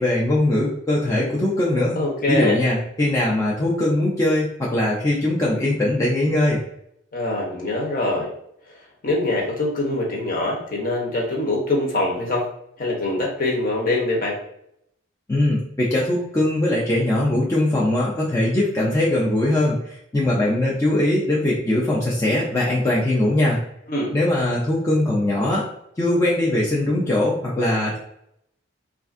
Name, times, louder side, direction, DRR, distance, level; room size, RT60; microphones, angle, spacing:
voice 1, 0.0-2.0 2.3-6.6 15.3-23.6 24.1-25.6 26.0-28.0, left 1 dB, 15° left, -5 dB, 0.4 m, -21 dB
voice 2, 2.0-2.6 7.1-8.3 8.7-8.8 9.0-12.5 12.8-14.4 23.9-24.1, left 2 dB, 45° left, -2 dB, 0.8 m, -23 dB
3.3 x 2.4 x 2.4 m, 0.75 s
head